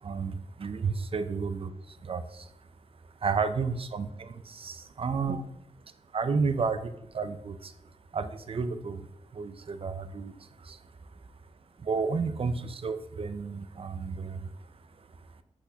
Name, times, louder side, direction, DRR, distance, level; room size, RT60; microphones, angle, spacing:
voice 1, 0.0-2.5 3.2-5.4 6.1-7.7 8.1-9.1 9.3-10.8 11.8-14.5, right 5 dB, 50° right, 11 dB, 0.5 m, -32 dB
6.1 x 5.8 x 2.8 m, 0.77 s
cardioid pair, 70°, 12 cm